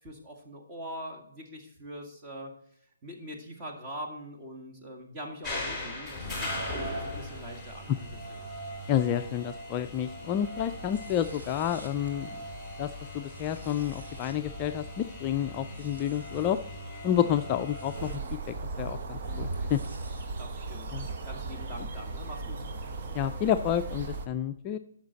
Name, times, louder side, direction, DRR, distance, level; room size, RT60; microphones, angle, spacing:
voice 1, 0.0-2.5 3.0-8.5 20.4-21.0 21.2-22.7, equal, 20° right, 1 dB, 1.9 m, -43 dB
sound 1, 5.4-18.1, left 1 dB, ahead, 2.9 m, -39 dB
voice 2, 8.9-12.3 12.8-16.6 17.0-18.2 18.8-19.8 20.9-21.1 23.1-24.8, left 10 dB, 25° left, 7 dB, 0.4 m, -29 dB
sound 2, 10.6-20.3, right 1 dB, 70° right, 2.3 m, -53 dB
sound 3, 17.9-24.3, right 3 dB, 40° right, 1.1 m, -36 dB
9.5 x 6.3 x 4.1 m, 0.69 s
hypercardioid pair, 150°, 0 cm